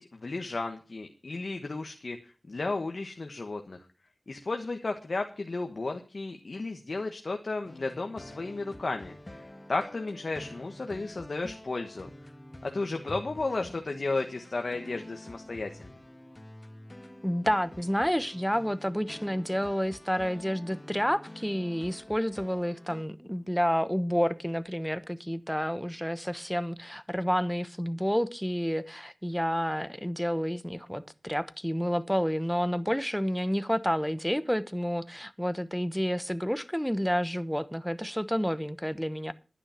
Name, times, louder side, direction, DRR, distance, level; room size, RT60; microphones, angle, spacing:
voice 1, 0.0-3.8 4.3-9.1 9.7-12.1 12.6-15.9, left 3 dB, 75° left, 1.3 m, -33 dB
sound 1, 7.6-23.0, left 1 dB, 30° left, 1.8 m, -48 dB
voice 2, 17.2-39.3, equal, ahead, 1.0 m, -29 dB
11.5 x 9.9 x 5.9 m
cardioid pair, 40°, 0 cm